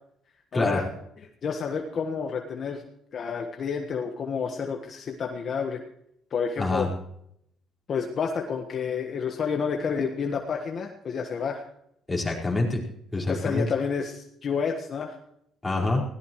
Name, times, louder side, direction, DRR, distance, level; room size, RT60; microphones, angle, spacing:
voice 1, 0.5-0.9 1.2-2.8 3.1-5.8 6.3-6.9 7.9-11.6 13.3-15.2, left 6 dB, 45° left, 3 dB, 1.4 m, -29 dB
voice 2, 12.1-12.8 13.1-13.6 15.6-16.0, left 2 dB, 10° left, -3 dB, 4.9 m, -26 dB
21.0 x 17.0 x 3.1 m, 0.75 s
cardioid pair, 125°, 0 cm